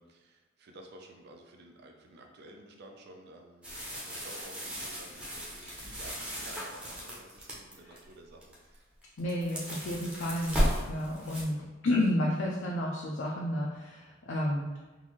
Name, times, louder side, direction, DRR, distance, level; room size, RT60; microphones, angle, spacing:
voice 1, 0.0-8.9 11.4-11.7, right 1 dB, 55° right, 2 dB, 0.5 m, -52 dB
sound 1, 3.6-8.0 8.4-8.8 9.0-11.4, equal, 5° right, 0.7 m, -35 dB
voice 2, 9.2-11.6 11.8-14.7, left 1 dB, 65° left, -3 dB, 0.5 m, -31 dB
3.9 x 2.6 x 3.0 m, 1.2 s
head